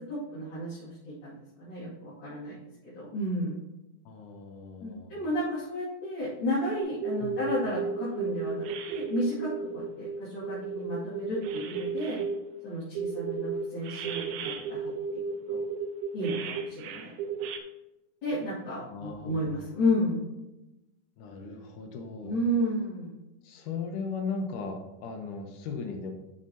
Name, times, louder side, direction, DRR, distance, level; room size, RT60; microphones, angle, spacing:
voice 1, 0.1-2.6 2.9-3.6 4.8-12.2 12.6-15.2 15.5-15.6 16.1-17.1 18.2-20.2 22.2-23.2, equal, 40° left, -11 dB, 2.8 m, -32 dB
voice 2, 4.1-5.2 7.2-7.4 18.8-19.7 21.2-22.4 23.4-26.1, left 4 dB, 75° left, 4 dB, 2.4 m, -37 dB
sound 1, 6.8-12.4 13.0-17.6, right 5 dB, 85° right, 2.2 m, -33 dB
11.0 x 6.5 x 2.8 m, 0.95 s
omnidirectional pair, 3.7 m